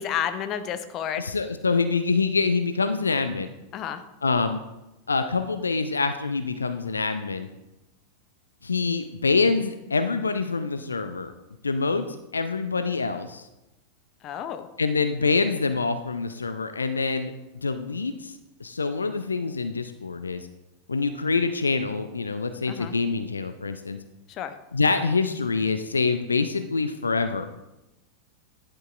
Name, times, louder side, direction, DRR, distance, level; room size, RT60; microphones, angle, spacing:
voice 1, 0.0-1.2 3.7-4.0 14.2-14.7 22.7-22.9 24.3-24.5, left 9 dB, 35° left, 10 dB, 0.7 m, -30 dB
voice 2, 1.2-3.5 4.2-4.6 5.1-7.5 8.6-11.3 11.6-12.0 12.3-13.4 14.8-17.3 17.6-18.3 18.6-20.5 20.9-24.0 24.7-27.4, left 4 dB, 75° left, 9 dB, 0.4 m, -25 dB
10.5 x 7.6 x 2.5 m, 0.95 s
figure-of-eight pair, 90°, 0 cm